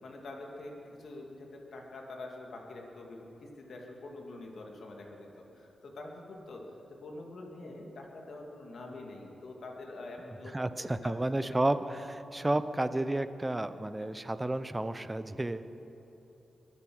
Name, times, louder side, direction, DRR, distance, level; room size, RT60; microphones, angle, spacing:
voice 1, 0.0-10.5 10.8-11.1 12.3-12.5, left 2 dB, 70° left, 0 dB, 2.4 m, -45 dB
voice 2, 10.5-15.6, right 1 dB, 20° right, 12 dB, 0.7 m, -31 dB
22.0 x 8.6 x 6.2 m, 2.9 s
cardioid pair, 65°, 0 cm